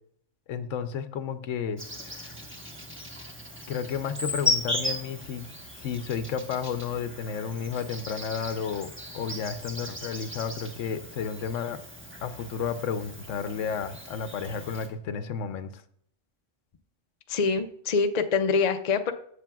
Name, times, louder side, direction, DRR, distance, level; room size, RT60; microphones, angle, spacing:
voice 1, 0.5-2.4 3.7-5.5 5.8-11.8 12.2-15.8, left 6 dB, 80° left, 11 dB, 1.0 m, -32 dB
Insect, 1.8-14.9, left 2 dB, 10° right, 1.1 m, -36 dB
voice 2, 17.3-19.1, left 5 dB, 45° left, 7 dB, 0.6 m, -25 dB
13.0 x 8.2 x 2.3 m, 0.67 s
omnidirectional pair, 1.3 m